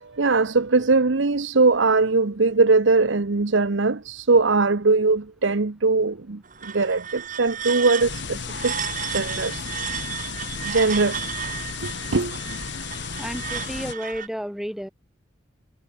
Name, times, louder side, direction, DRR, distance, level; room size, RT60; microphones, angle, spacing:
voice 1, 0.0-8.7 9.1-9.7 10.6-11.3 11.8-12.4, right 3 dB, 70° right, 0.9 m, -21 dB
sound 1, 6.4-14.3, right 8 dB, 40° right, 1.9 m, -33 dB
sound 2, 8.0-13.9, left 6 dB, 60° left, 0.8 m, -34 dB
voice 2, 13.2-14.9, equal, ahead, 2.4 m, -31 dB
head